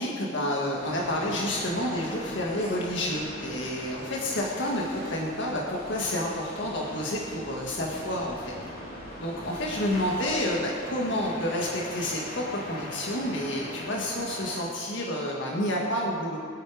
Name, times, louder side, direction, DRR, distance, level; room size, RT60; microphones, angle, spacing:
voice 1, 0.0-8.5 9.2-16.4, left 1 dB, 70° left, -2 dB, 1.7 m, -29 dB
sound 1, 0.7-15.8, equal, 50° left, 3.1 m, -41 dB
23.5 x 8.2 x 5.0 m, 2.5 s
head